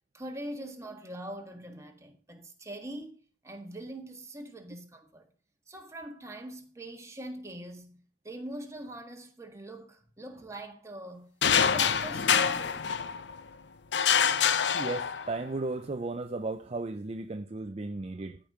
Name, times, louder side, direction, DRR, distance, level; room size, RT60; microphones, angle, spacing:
voice 1, 0.1-3.2 3.4-5.3 5.7-8.0 8.2-11.3 11.6-13.2, right 1 dB, 15° right, 1.6 m, -43 dB
sound 1, 11.4-13.4 13.9-15.5, left 7 dB, 65° left, 0.6 m, -26 dB
voice 2, 14.7-18.4, right 3 dB, 35° right, 0.5 m, -35 dB
13.5 x 5.2 x 6.6 m
head